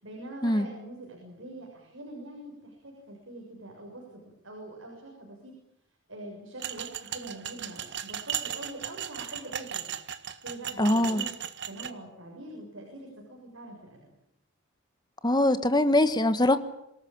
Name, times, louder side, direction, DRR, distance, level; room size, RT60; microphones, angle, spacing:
voice 1, 0.0-5.6 6.1-9.9 10.4-11.3 11.7-14.2, right 1 dB, 75° right, 6.9 m, -44 dB
sound 1, 6.6-11.9, right 9 dB, 60° right, 1.7 m, -36 dB
voice 2, 10.8-11.2 15.2-16.6, left 1 dB, 20° left, 1.5 m, -22 dB
27.0 x 19.0 x 8.9 m
head